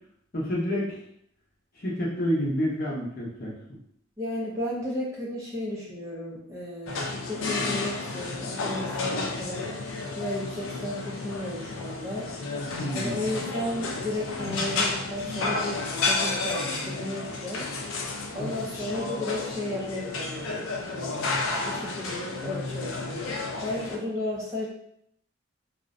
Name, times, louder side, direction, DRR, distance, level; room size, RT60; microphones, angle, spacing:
voice 1, 0.3-1.0 1.8-3.5 12.8-13.2 18.4-18.5, equal, 45° left, -5 dB, 0.7 m, -28 dB
voice 2, 4.2-9.7 10.2-12.3 12.9-17.7 18.3-20.6 20.9-21.2 21.6-23.2 23.6-24.7, left 1 dB, 15° right, -5 dB, 0.4 m, -34 dB
sound 1, 6.9-24.0, left 3 dB, 80° left, 0.4 m, -31 dB
2.4 x 2.0 x 2.4 m, 0.71 s
head